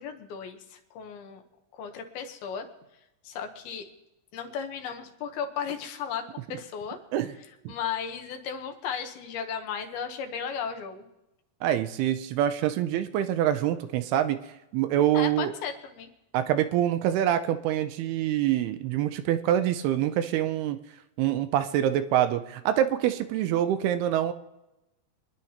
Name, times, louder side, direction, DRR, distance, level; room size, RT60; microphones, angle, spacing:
voice 1, 0.0-1.4 1.7-2.7 3.2-3.9 4.3-7.0 7.4-11.1 15.1-16.1, left 7 dB, 75° left, 5 dB, 2.8 m, -35 dB
voice 2, 11.6-14.4 14.7-15.5 16.3-20.8 21.2-24.3, right 11 dB, 80° right, 10 dB, 2.6 m, -25 dB
25.0 x 10.5 x 2.9 m, 0.93 s
omnidirectional pair, 4.7 m